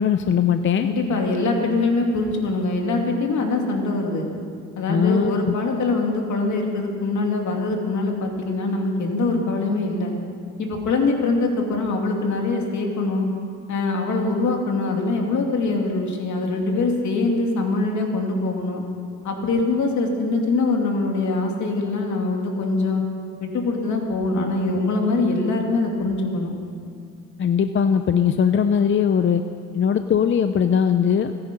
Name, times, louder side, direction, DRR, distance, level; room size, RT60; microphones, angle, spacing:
voice 1, 0.0-0.9 4.9-5.5 27.4-29.4 29.7-31.3, left 7 dB, 40° left, 9 dB, 0.7 m, -20 dB
voice 2, 0.8-4.3 4.8-10.1 10.6-13.3 13.7-18.8 19.2-23.0 23.4-26.6, left 3 dB, 70° left, 1 dB, 2.8 m, -23 dB
25.5 x 9.9 x 5.4 m, 2.4 s
cardioid pair, 90°, 30 cm